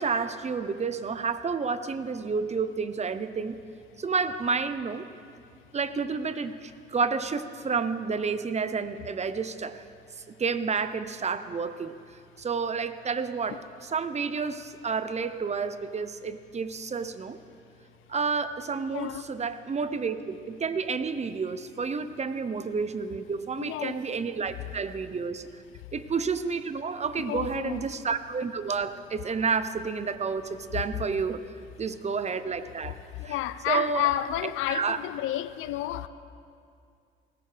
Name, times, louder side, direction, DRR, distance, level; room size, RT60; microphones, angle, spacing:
voice 1, 0.0-3.6 4.0-5.1 5.7-9.8 10.4-11.9 12.4-17.4 18.1-25.5 25.9-31.4 31.8-33.0 33.2-33.4 33.7-34.1 34.7-35.0, right 5 dB, 35° right, 0.8 m, -30 dB
voice 2, 18.9-19.2 23.6-24.0 27.2-27.9 33.2-36.1, left 13 dB, 85° left, 0.5 m, -31 dB
19.5 x 18.0 x 3.4 m
cardioid pair, 90°, 20 cm